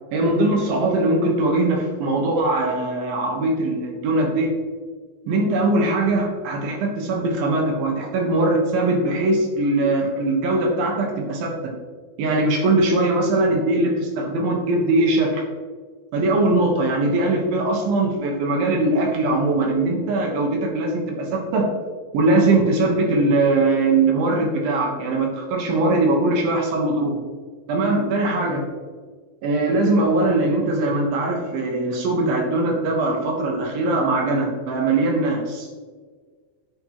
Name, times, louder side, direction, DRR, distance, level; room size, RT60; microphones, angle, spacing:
voice 1, 0.1-4.5 5.3-11.8 12.2-15.4 16.1-21.7 22.1-27.2 27.7-28.6 29.4-35.7, right 2 dB, 65° right, 1 dB, 2.9 m, -21 dB
10.0 x 8.6 x 3.1 m, 1.5 s
omnidirectional pair, 5.2 m